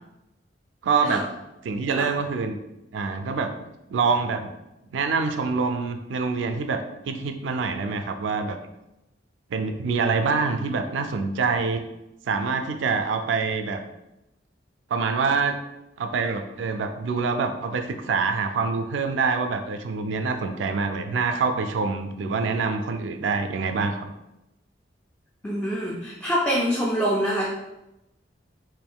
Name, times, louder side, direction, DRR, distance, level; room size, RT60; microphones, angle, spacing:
voice 1, 0.8-1.2 1.6-2.6 2.9-3.5 3.9-4.5 4.9-8.6 9.5-11.8 12.3-13.8 14.9-15.6 16.0-24.1, right 4 dB, 85° right, 7 dB, 0.3 m, -25 dB
voice 2, 25.4-27.5, equal, 10° left, -4 dB, 0.3 m, -25 dB
3.5 x 2.5 x 2.2 m, 0.92 s
head